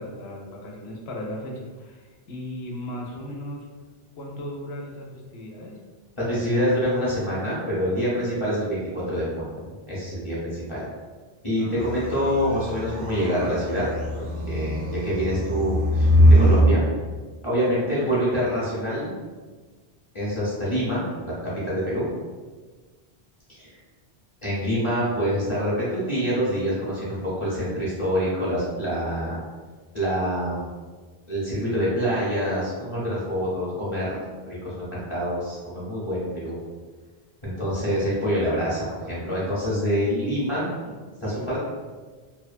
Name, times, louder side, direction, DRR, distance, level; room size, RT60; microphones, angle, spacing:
voice 1, 0.0-3.7 4.1-5.8 11.6-12.0 12.5-13.0 17.6-18.7 40.8-41.0 41.3-41.6, left 1 dB, 85° left, -1 dB, 0.9 m, -37 dB
voice 2, 6.2-10.8 11.4-13.9 14.1-16.8 17.4-19.1 20.1-22.1 23.6-23.7 24.4-29.4 29.9-30.7 31.3-34.2 34.5-36.6 37.4-40.7 41.2-41.6, equal, 35° left, -9 dB, 0.7 m, -26 dB
sound 1, 11.8-16.7, equal, 55° right, 0.5 m, -21 dB
2.7 x 2.1 x 2.4 m, 1.4 s
omnidirectional pair, 1.1 m